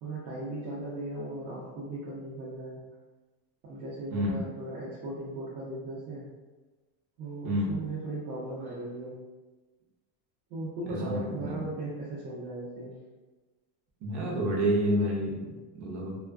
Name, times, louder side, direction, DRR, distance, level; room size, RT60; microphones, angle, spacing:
voice 1, 0.0-2.8 3.6-6.3 7.2-9.2 10.5-12.9, right 2 dB, 75° right, -8 dB, 0.9 m, -37 dB
voice 2, 4.1-4.5 7.4-7.7 10.9-11.6 14.0-16.2, equal, 40° right, -3 dB, 0.6 m, -29 dB
2.3 x 2.3 x 2.3 m, 1.2 s
supercardioid pair, 150°, 48 cm